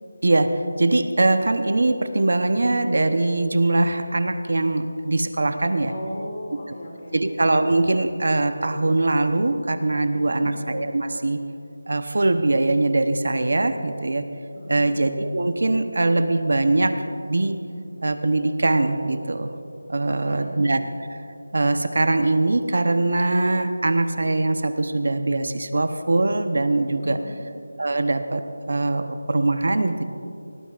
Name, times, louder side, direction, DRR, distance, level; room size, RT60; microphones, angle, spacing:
voice 1, 0.2-5.9 7.1-11.4 11.9-14.3 14.7-17.0 17.3-17.6 18.0-19.5 19.9-20.8 21.1-21.2 21.5-27.2 27.8-30.0, right 2 dB, 50° right, 8 dB, 0.8 m, -22 dB
voice 2, 5.9-7.3 10.1-10.5 14.5-14.9 20.1-20.6 27.0-27.4, left 1 dB, 30° left, -1 dB, 2.4 m, -37 dB
24.0 x 18.5 x 2.5 m, 2.6 s
figure-of-eight pair, 180°, 0 cm